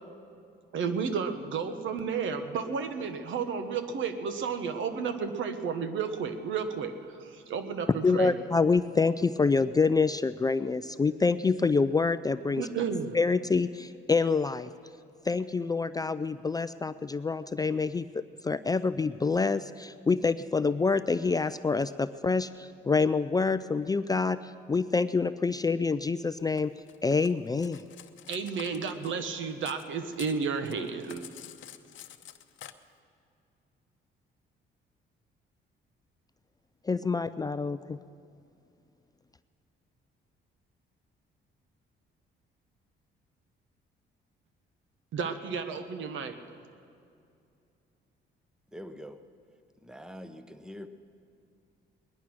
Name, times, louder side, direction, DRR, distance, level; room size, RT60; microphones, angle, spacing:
voice 1, 0.7-8.4 12.6-13.2 28.3-31.2 45.1-46.4, right 6 dB, 75° right, 9 dB, 1.2 m, -32 dB
voice 2, 8.0-12.6 13.1-14.7 15.3-24.4 24.7-26.7 27.0-27.8 36.9-38.0, left 4 dB, 20° left, 13 dB, 0.4 m, -27 dB
Cutlery silverware, 26.6-29.9 30.1-32.7, left 12 dB, 75° left, 0.8 m, -48 dB
voice 3, 48.7-49.2 49.8-50.9, equal, 5° right, 10 dB, 0.9 m, -44 dB
19.5 x 11.0 x 6.2 m, 2.5 s
cardioid pair, 90°, 20 cm